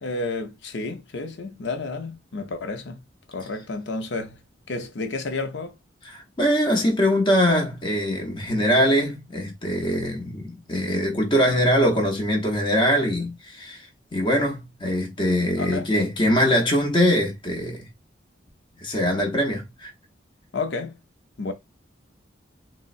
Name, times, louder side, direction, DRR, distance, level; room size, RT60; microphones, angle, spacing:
voice 1, 0.0-3.0 3.3-4.4 4.7-5.7 15.6-15.9 20.5-21.0 21.4-21.5, left 3 dB, 65° left, 0.6 m, -31 dB
voice 2, 6.0-17.9 18.8-19.9, equal, 25° left, 0.8 m, -22 dB
3.7 x 2.0 x 2.4 m
head